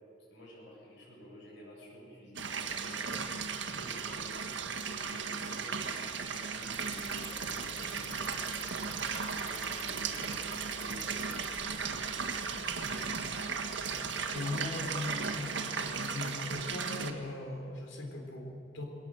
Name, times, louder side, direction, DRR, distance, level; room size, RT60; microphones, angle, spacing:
voice 1, 0.3-3.2 3.6-4.7 5.0-13.1, equal, 70° left, -5 dB, 7.4 m, -53 dB
sound 1, 2.4-17.1, right 5 dB, 70° right, 1.5 m, -36 dB
Bicycle, 6.7-14.0, equal, 5° left, 2.1 m, -50 dB
voice 2, 14.3-18.9, left 2 dB, 90° left, 2 dB, 4.2 m, -39 dB
21.0 x 18.5 x 7.9 m, 2.7 s
head